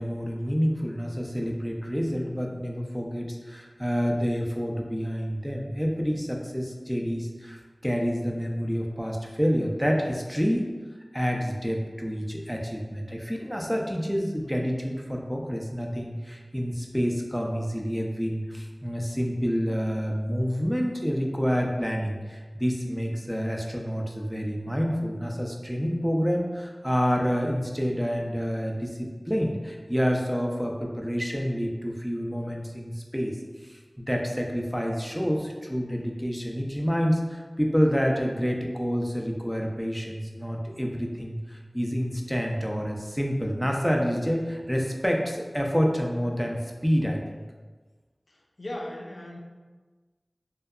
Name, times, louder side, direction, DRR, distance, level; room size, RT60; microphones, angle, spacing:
voice 1, 0.0-10.7 11.1-33.3 33.6-47.2, equal, ahead, 0 dB, 0.3 m, -28 dB
voice 2, 48.3-49.4, left 1 dB, 85° left, 0 dB, 0.3 m, -38 dB
2.6 x 2.2 x 2.3 m, 1.3 s
wide cardioid pair, 50°, 0 cm